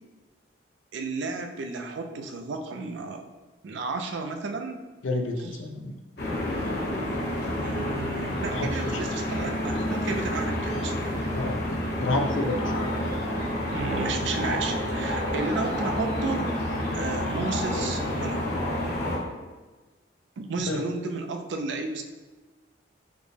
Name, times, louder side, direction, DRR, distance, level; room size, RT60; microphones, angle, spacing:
voice 1, 0.9-3.3 3.6-4.8 5.4-5.6 7.6-11.2 13.7-16.5 16.9-18.5 20.4-22.0, right 3 dB, 70° right, 5 dB, 0.4 m, -33 dB
voice 2, 5.0-6.0 8.5-9.0 11.3-12.7 20.7-20.8, left 2 dB, 85° left, 2 dB, 0.5 m, -29 dB
sound 1, 6.2-19.2, left 1 dB, 55° left, 0.8 m, -29 dB
5.0 x 2.1 x 3.2 m, 1.3 s
head